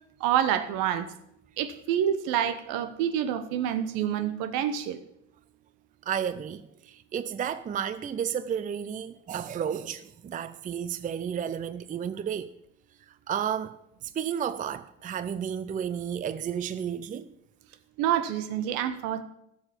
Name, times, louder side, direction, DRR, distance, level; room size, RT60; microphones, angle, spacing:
voice 1, 0.2-1.1 1.6-5.0 18.0-19.2, right 10 dB, 65° right, 1.2 m, -27 dB
voice 2, 6.1-12.5 13.1-13.8 14.0-17.3, right 8 dB, 20° right, 0.5 m, -32 dB
13.0 x 7.0 x 7.1 m
hypercardioid pair, 70°, 37 cm